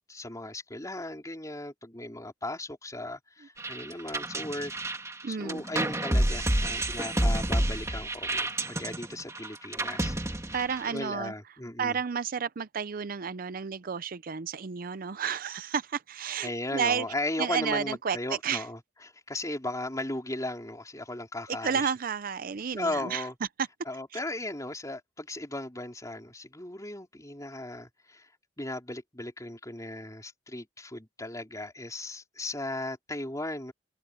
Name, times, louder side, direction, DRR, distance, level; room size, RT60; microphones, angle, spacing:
voice 1, 0.1-4.7 5.3-10.1 10.8-12.0 16.4-18.8 19.3-22.0 22.7-23.4 23.8-28.3 28.6-33.7, left 2 dB, 20° left, 4.1 m, -36 dB
sound 1, 3.6-11.1, right 1 dB, 15° right, 2.1 m, -29 dB
voice 2, 5.2-5.6 10.5-11.3 11.8-17.1 17.4-18.6 21.6-23.3, right 6 dB, 50° right, 0.5 m, -31 dB
open air
head